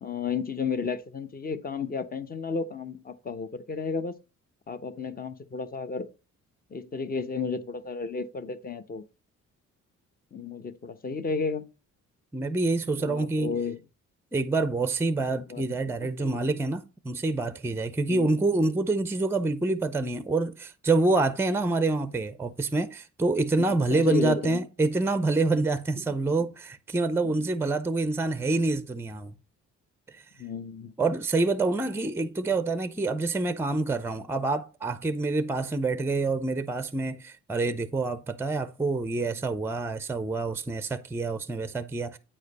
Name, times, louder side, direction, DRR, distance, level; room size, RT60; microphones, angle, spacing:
voice 1, 0.0-4.1 4.7-6.1 6.7-9.0 10.3-11.6 13.0-13.8 15.3-15.6 16.0-16.4 18.1-18.3 23.6-24.6 27.2-27.5 30.4-30.9, left 5 dB, 30° left, 0.9 m, -33 dB
voice 2, 12.3-13.5 14.3-29.4 30.1-30.2 31.0-42.2, right 3 dB, 10° right, 0.5 m, -27 dB
8.7 x 4.9 x 4.1 m
cardioid pair, 90°, 30 cm